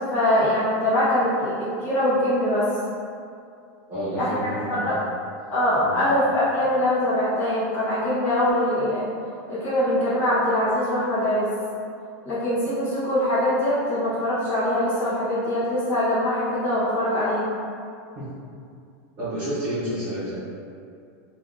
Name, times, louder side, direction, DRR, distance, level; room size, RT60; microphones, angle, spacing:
voice 1, 0.0-2.6 4.2-4.3 4.7-4.9 5.5-9.0 9.5-11.5 12.2-17.5, left 1 dB, 25° left, -11 dB, 0.9 m, -23 dB
voice 2, 3.9-5.0 5.8-6.0 18.1-18.2 19.2-20.4, right 1 dB, 30° right, -12 dB, 1.0 m, -30 dB
2.7 x 2.4 x 3.6 m, 2.4 s
supercardioid pair, 180°, 9 cm